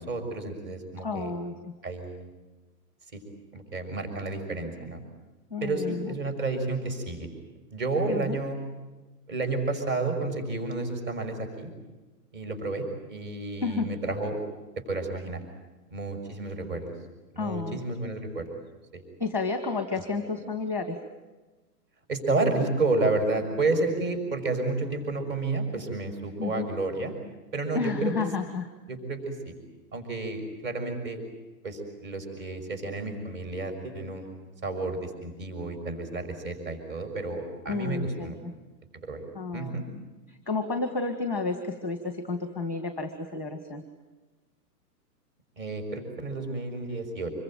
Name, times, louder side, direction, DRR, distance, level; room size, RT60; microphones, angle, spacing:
voice 1, 0.0-1.3 1.8-2.3 3.1-3.2 3.5-5.0 5.6-7.3 7.7-8.6 9.3-11.7 12.3-12.8 13.1-14.4 14.8-15.4 15.9-16.9 17.3-18.5 18.9-19.0 20.0-20.1 22.1-27.1 27.5-28.1 28.9-29.5 29.9-31.2 31.6-34.3 34.6-38.4 39.0-39.2 39.5-39.8 45.6-47.3, right 3 dB, 35° right, 7 dB, 6.3 m, -31 dB
voice 2, 1.0-1.7 5.5-6.1 8.1-8.4 13.6-13.9 17.4-17.8 19.2-21.0 26.4-26.7 27.7-28.7 37.7-38.5 39.3-39.8 40.5-43.8, left 4 dB, 5° right, 7 dB, 1.4 m, -31 dB
26.0 x 23.0 x 9.0 m, 1.2 s
hypercardioid pair, 165°, 49 cm